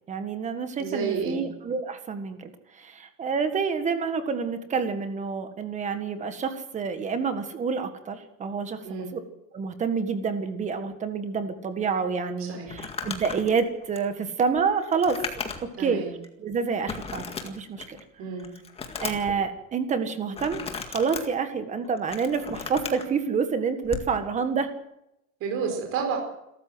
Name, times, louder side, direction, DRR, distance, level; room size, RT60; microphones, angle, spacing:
voice 1, 0.1-9.2 9.5-15.2 15.8-16.0 16.4-18.0 19.0-20.6 20.9-24.7, right 5 dB, 20° right, 9 dB, 1.7 m, -28 dB
voice 2, 0.8-1.4 8.8-9.1 12.5-12.7 15.8-16.1 18.2-18.5 25.4-26.2, right 5 dB, 35° right, 2 dB, 4.8 m, -30 dB
Crumpling crinkling, 12.7-15.8 16.2-16.3 16.9-18.0 18.4-19.4 20.3-21.2 21.8-23.1 23.8-24.1, left 5 dB, 15° left, 2.0 m, -36 dB
28.0 x 13.5 x 7.9 m, 0.84 s
cardioid pair, 175°, 39 cm